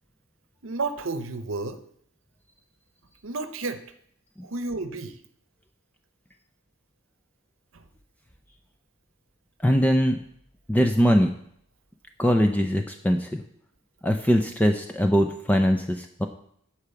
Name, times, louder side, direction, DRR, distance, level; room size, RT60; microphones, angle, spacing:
voice 1, 0.6-1.8 3.2-3.8 4.4-5.2 7.7-7.8, right 3 dB, 65° right, 10 dB, 0.9 m, -31 dB
voice 2, 9.6-10.2 10.7-11.3 12.2-13.4 14.0-16.3, equal, 5° left, 5 dB, 0.5 m, -21 dB
10.0 x 4.7 x 7.0 m, 0.67 s
head